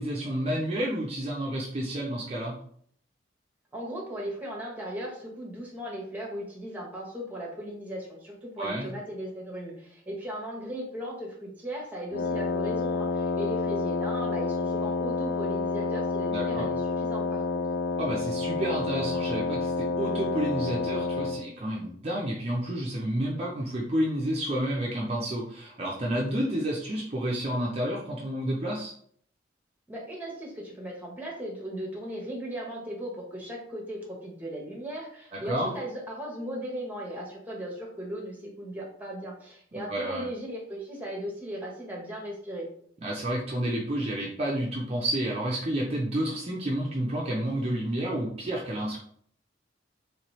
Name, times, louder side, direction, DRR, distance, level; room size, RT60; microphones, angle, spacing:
voice 1, 0.0-2.5 8.6-8.9 16.3-16.7 18.0-28.9 35.3-35.7 39.9-40.2 43.0-49.0, right 1 dB, 35° right, -3 dB, 0.5 m, -30 dB
voice 2, 3.7-17.6 29.9-42.7, equal, 10° right, -2 dB, 0.9 m, -37 dB
Wind instrument woodwind instrument, 12.1-21.5, left 4 dB, 60° left, 0.3 m, -29 dB
3.1 x 2.9 x 3.0 m, 0.62 s
head